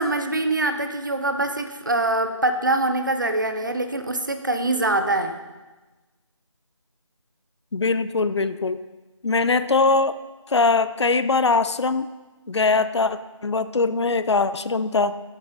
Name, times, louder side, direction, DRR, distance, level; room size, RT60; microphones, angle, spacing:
voice 1, 0.0-5.4, right 2 dB, 40° right, 8 dB, 0.7 m, -24 dB
voice 2, 7.7-8.8 9.2-10.2 10.5-12.1 12.5-15.2, left 4 dB, 60° left, 13 dB, 0.5 m, -21 dB
10.0 x 8.2 x 4.0 m, 1.2 s
figure-of-eight pair, 175°, 16 cm